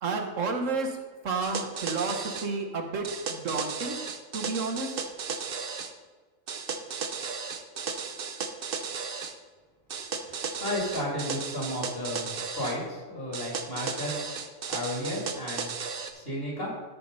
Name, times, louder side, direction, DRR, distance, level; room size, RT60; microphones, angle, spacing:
voice 1, 0.0-1.0 1.2-4.0 4.3-5.0, right 4 dB, 70° right, 3 dB, 1.4 m, -31 dB
sound 1, 1.4-2.5 3.0-5.9 6.5-9.3 9.9-12.8 13.3-16.1, right 5 dB, 50° right, 0.9 m, -35 dB
voice 2, 10.6-14.2 14.7-15.7 16.1-16.7, left 1 dB, 45° left, -3 dB, 3.1 m, -33 dB
13.0 x 4.6 x 5.4 m, 1.4 s
omnidirectional pair, 1.4 m